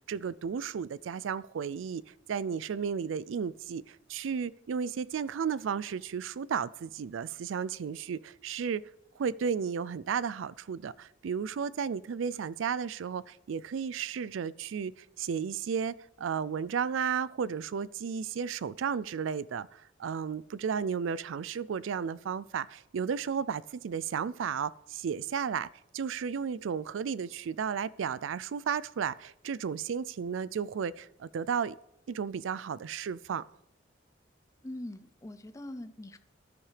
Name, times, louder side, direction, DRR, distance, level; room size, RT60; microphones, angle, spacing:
voice 1, 0.1-2.0 2.3-8.8 9.2-14.9 15.2-25.7 25.9-31.8 32.1-33.4, right 6 dB, 80° right, 0.4 m, -33 dB
voice 2, 34.6-36.2, left 1 dB, 15° left, 0.5 m, -42 dB
14.5 x 10.5 x 3.3 m
head